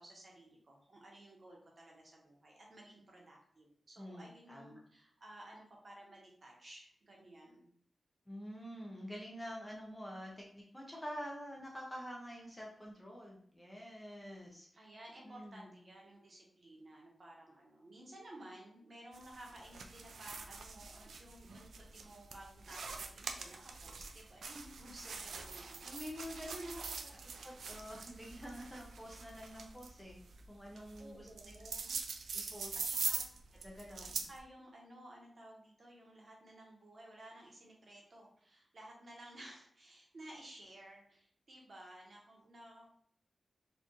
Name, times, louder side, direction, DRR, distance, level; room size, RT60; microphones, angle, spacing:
voice 1, 0.0-7.7 14.8-27.5 31.0-32.0 32.9-33.3 34.2-43.0, right 1 dB, 40° right, -2 dB, 1.0 m, -55 dB
voice 2, 4.0-4.8 8.3-14.9 15.2-15.7 25.8-26.7 27.4-30.2 30.5-31.6 32.3-32.8 33.6-34.3, equal, 10° left, -2 dB, 0.7 m, -47 dB
sound 1, 19.1-34.4, right 4 dB, 80° right, 0.4 m, -44 dB
4.3 x 2.5 x 3.0 m, 0.66 s
wide cardioid pair, 175°, 0 cm